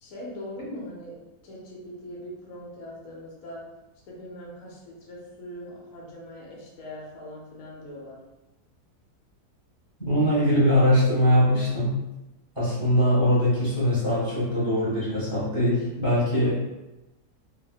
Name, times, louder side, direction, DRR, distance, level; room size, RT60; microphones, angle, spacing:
voice 1, 0.0-3.7 4.0-8.2, equal, 60° left, -4 dB, 1.2 m, -41 dB
voice 2, 10.0-12.0 12.5-16.6, equal, 20° left, -9 dB, 1.3 m, -22 dB
3.6 x 2.6 x 2.2 m, 1.0 s
omnidirectional pair, 1.7 m